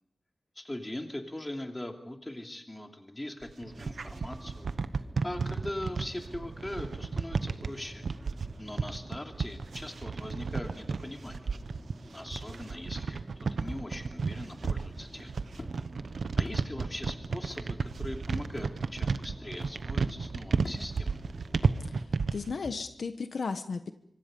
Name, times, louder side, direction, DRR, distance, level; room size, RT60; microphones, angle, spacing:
voice 1, 0.5-4.7 5.2-8.0 8.6-11.5 12.1-15.3 16.4-21.2, left 1 dB, 15° left, 3 dB, 2.8 m, -41 dB
sound 1, 3.4-22.5, right 4 dB, 85° right, 1.0 m, -33 dB
sound 2, 3.6-22.1, right 1 dB, 15° right, 2.9 m, -49 dB
sound 3, 13.6-14.0 14.6-14.8 15.6-15.8 16.4-16.6 17.5-17.6 18.5-18.6 19.6-19.8 20.6-21.0 21.6-21.8 22.6-22.8, left 2 dB, 45° left, 3.4 m, -45 dB
voice 2, 22.3-23.9, left 4 dB, 75° left, 8 dB, 1.2 m, -34 dB
25.5 x 25.5 x 5.4 m, 0.76 s
wide cardioid pair, 110°, 0 cm